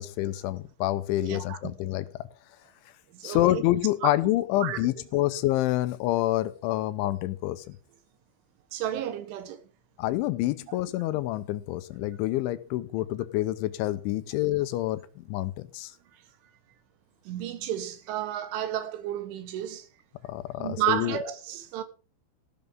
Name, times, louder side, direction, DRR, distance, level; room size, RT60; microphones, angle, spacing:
voice 1, 0.0-2.1 3.2-7.8 10.0-15.0 15.3-15.9 20.2-21.2, left 15 dB, 85° left, 3.3 m, -27 dB
voice 2, 1.2-1.8 3.1-3.6 4.0-4.1 4.6-4.8 8.7-9.6 10.7-10.8 17.3-19.9 20.6-21.8, right 11 dB, 90° right, 3.9 m, -32 dB
15.0 x 12.5 x 3.7 m
omnidirectional pair, 5.3 m